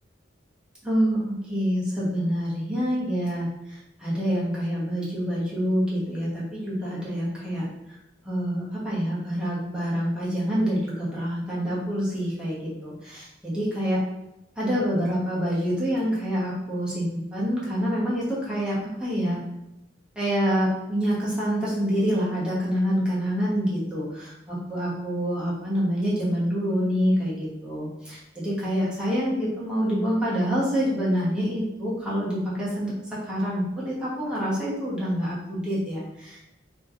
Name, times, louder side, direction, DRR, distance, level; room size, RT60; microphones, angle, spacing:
voice 1, 0.8-8.0 8.2-14.0 14.6-19.4 20.2-36.6, equal, 5° right, -8 dB, 1.1 m, -27 dB
3.2 x 3.0 x 3.6 m, 0.91 s
head